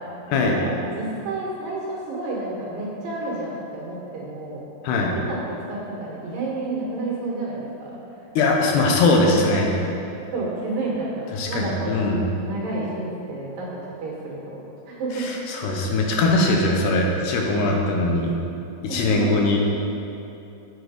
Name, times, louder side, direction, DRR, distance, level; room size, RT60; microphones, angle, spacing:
voice 1, 0.0-4.6 5.3-8.0 8.4-8.5 10.3-12.1 12.5-14.6 14.9-15.3 15.6-15.8 18.9-19.4, right 2 dB, 65° right, -4 dB, 3.1 m, -30 dB
voice 2, 8.4-9.7 11.3-12.2 15.2-18.4 18.8-19.6, left 2 dB, 80° left, 0 dB, 3.1 m, -21 dB
7.9 x 7.8 x 5.0 m, 2.8 s
omnidirectional pair, 4.7 m